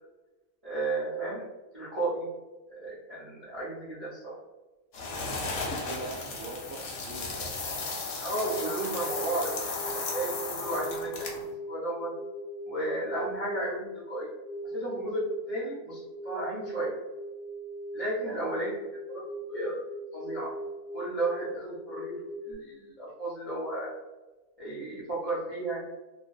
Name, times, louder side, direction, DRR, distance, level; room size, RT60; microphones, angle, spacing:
voice 1, 0.6-1.4 1.7-2.3 2.7-4.4 8.2-11.3 11.7-12.1 12.6-14.3 14.7-16.9 17.9-18.8 19.1-19.8 20.1-20.5 20.9-22.1 22.4-23.9 24.6-25.8, right 2 dB, 40° right, -7 dB, 0.5 m, -33 dB
sound 1, 4.9-11.5, left 3 dB, 65° left, 0.8 m, -35 dB
voice 2, 5.4-7.7 18.2-18.4, right 2 dB, 70° right, -5 dB, 1.1 m, -42 dB
sound 2, 8.4-22.5, right 2 dB, 25° left, 0.5 m, -40 dB
2.5 x 2.2 x 2.2 m, 1.1 s
omnidirectional pair, 1.5 m